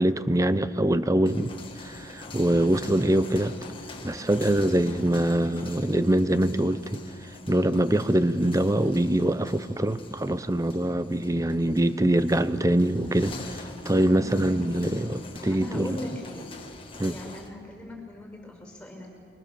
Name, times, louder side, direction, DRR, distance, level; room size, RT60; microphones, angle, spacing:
voice 1, 0.0-1.5 1.8-3.6 4.0-7.0 7.5-16.0 17.0-17.2, right 1 dB, 15° right, 13 dB, 0.7 m, -24 dB
sound 1, 1.1-17.5, left 3 dB, 25° left, 1.7 m, -44 dB
voice 2, 14.0-14.4 14.7-14.9 15.5-16.5 17.1-19.1, left 1 dB, 5° left, 1 dB, 5.7 m, -40 dB
29.5 x 24.0 x 6.9 m, 2.2 s
head